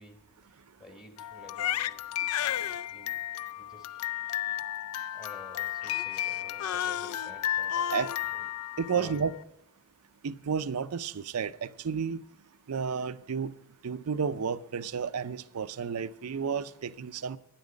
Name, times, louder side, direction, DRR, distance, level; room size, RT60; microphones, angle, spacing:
voice 1, 0.0-3.3 3.5-4.7 5.1-9.4, left 1 dB, 20° left, 1.1 m, -52 dB
Crying sobbing, 1.2-9.4, left 11 dB, 90° left, 0.4 m, -33 dB
voice 2, 8.8-9.3 10.2-12.2 12.7-13.5 13.8-17.4, right 6 dB, 80° right, 0.5 m, -32 dB
12.0 x 10.5 x 5.1 m
head